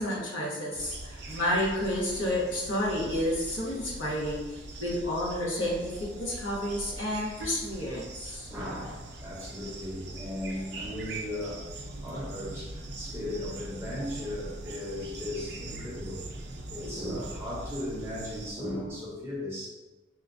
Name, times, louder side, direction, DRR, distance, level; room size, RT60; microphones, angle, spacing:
voice 1, 0.0-4.4 4.8-8.5, left 1 dB, 85° left, -4 dB, 0.9 m, -30 dB
sound 1, 0.7-18.5, right 2 dB, 55° right, 0.4 m, -42 dB
voice 2, 1.1-1.4 6.5-6.6 8.3-11.7 12.0-16.3 16.6-19.7, left 1 dB, 15° right, -7 dB, 0.7 m, -37 dB
4.4 x 2.3 x 2.5 m, 1.1 s
head